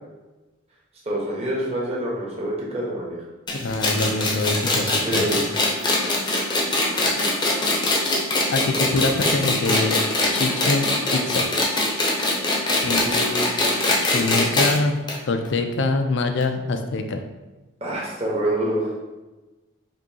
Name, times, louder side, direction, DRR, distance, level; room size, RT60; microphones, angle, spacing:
voice 1, 1.0-3.2 4.9-5.5 12.9-13.7 17.8-18.9, right 1 dB, 30° right, -4 dB, 1.0 m, -27 dB
voice 2, 3.5-5.4 8.5-10.0 10.3-11.5 12.7-13.0 13.8-15.0 15.3-17.2, left 3 dB, 60° left, 6 dB, 0.4 m, -24 dB
sound 1, 3.5-14.8 15.1-15.2 15.4-15.5 16.4-16.5, left 2 dB, 20° left, 0.6 m, -22 dB
5.1 x 2.7 x 2.8 m, 1.1 s
head